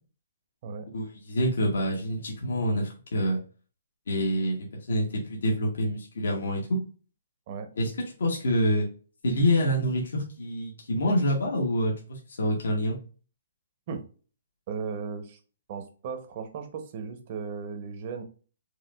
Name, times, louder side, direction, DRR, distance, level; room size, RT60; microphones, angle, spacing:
voice 1, 0.9-3.4 4.1-6.8 7.8-7.9 8.2-8.9 9.2-13.0, equal, 75° left, -1 dB, 1.2 m, -26 dB
voice 2, 14.7-15.4 15.7-18.2, right 5 dB, 40° right, 6 dB, 0.9 m, -36 dB
4.8 x 2.6 x 2.4 m, 0.38 s
hypercardioid pair, 150°, 0 cm